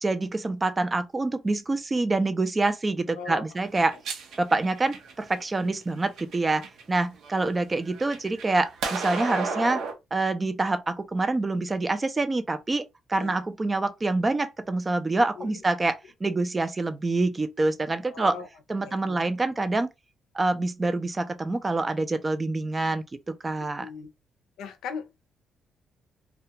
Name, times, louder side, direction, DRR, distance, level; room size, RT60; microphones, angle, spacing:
voice 1, 0.0-4.0 4.4-9.8 10.1-12.8 13.1-18.3 18.7-19.9 20.3-23.0 23.4-23.9, right 2 dB, 25° right, 0.4 m, -26 dB
voice 2, 3.1-3.6 3.9-4.0 7.4-7.5 13.2-13.4 15.4-15.6 18.0-18.5 18.8-19.3 23.8-24.1 24.6-25.1, left 6 dB, 85° left, 0.5 m, -39 dB
sound 1, 3.6-5.4 6.0-6.8 7.2-9.9, right 4 dB, 75° right, 0.7 m, -33 dB
2.3 x 2.2 x 2.7 m
cardioid pair, 90°, 0 cm